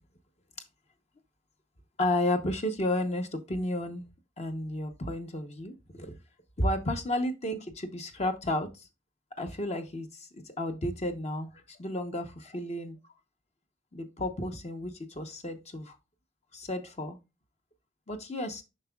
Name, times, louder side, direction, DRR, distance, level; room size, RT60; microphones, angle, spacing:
voice 1, 2.0-4.0 4.4-6.2 6.6-8.9 9.4-13.0 13.9-16.0 16.5-17.2 18.1-18.6, left 1 dB, 35° left, 0.8 m, -32 dB
7.4 x 5.8 x 2.3 m
head